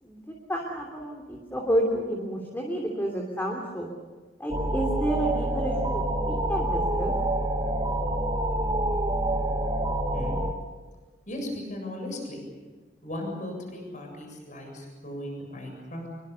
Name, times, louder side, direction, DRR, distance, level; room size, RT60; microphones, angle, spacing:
voice 1, 0.0-3.9 4.4-7.1, right 1 dB, 10° left, 1 dB, 3.0 m, -30 dB
sound 1, 4.5-10.5, right 1 dB, 20° right, 1.6 m, -27 dB
voice 2, 11.3-12.5 13.0-16.1, left 1 dB, 45° left, 2 dB, 7.5 m, -37 dB
26.0 x 23.5 x 7.0 m, 1.3 s
head